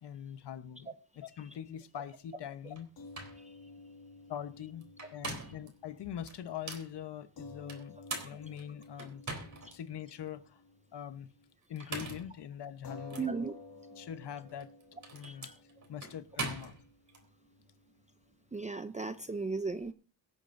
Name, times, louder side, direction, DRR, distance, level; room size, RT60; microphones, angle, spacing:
voice 1, 0.0-2.9 4.3-4.8 5.1-9.2 9.7-10.6 10.9-11.3 11.7-13.3 14.0-14.7 15.1-15.5 15.9-16.8, left 9 dB, 80° left, 1.1 m, -43 dB
Open & Close Lock, 2.7-2.8 3.1-3.4 4.8-5.7 6.3-6.9 7.7-9.8 10.3-10.4 11.6-12.3 13.1-13.3 14.5-17.2, right 3 dB, 45° right, 3.7 m, -42 dB
sound 1, 3.0-11.5 11.8-12.0 12.8-19.4, left 3 dB, 60° left, 1.9 m, -54 dB
voice 2, 13.2-13.5 15.2-15.5 18.5-19.9, right 4 dB, 20° right, 0.5 m, -36 dB
24.0 x 8.8 x 2.6 m
wide cardioid pair, 125°, 41 cm